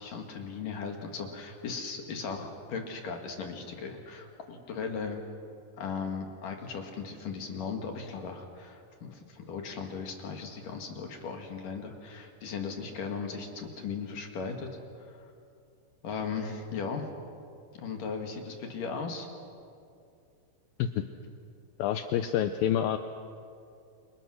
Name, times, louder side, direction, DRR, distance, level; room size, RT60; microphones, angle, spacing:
voice 1, 0.0-5.2 5.8-14.7 15.0-15.3 16.0-17.1 17.7-19.3, left 5 dB, 60° left, 3 dB, 3.2 m, -37 dB
voice 2, 21.8-23.0, left 10 dB, 75° left, 8 dB, 2.3 m, -27 dB
29.0 x 27.0 x 6.4 m, 2.5 s
omnidirectional pair, 4.8 m